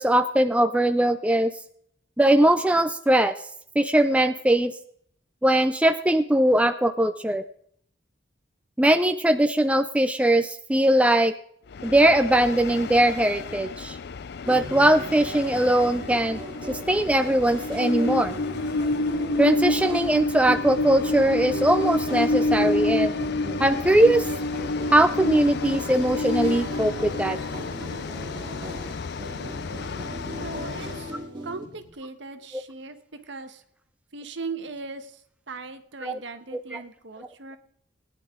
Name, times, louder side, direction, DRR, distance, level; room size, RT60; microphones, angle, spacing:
voice 1, 0.0-1.5 2.2-3.3 3.8-4.7 5.4-7.4 8.8-11.3 11.8-14.0 14.5-16.4 16.7-18.3 19.4-23.1 23.6-24.3 24.9-27.4 36.0-36.2 36.7-36.8, right 1 dB, 5° right, 8 dB, 0.4 m, -20 dB
Train, 11.7-31.2, left 2 dB, 55° left, 0.5 m, -29 dB
sound 1, 14.4-31.9, right 1 dB, 25° right, 2.3 m, -38 dB
voice 2, 30.4-31.1 31.4-33.0 33.3-33.6 34.1-35.2 35.5-37.6, right 4 dB, 65° right, 9 dB, 1.3 m, -38 dB
19.5 x 10.0 x 3.8 m, 0.65 s
head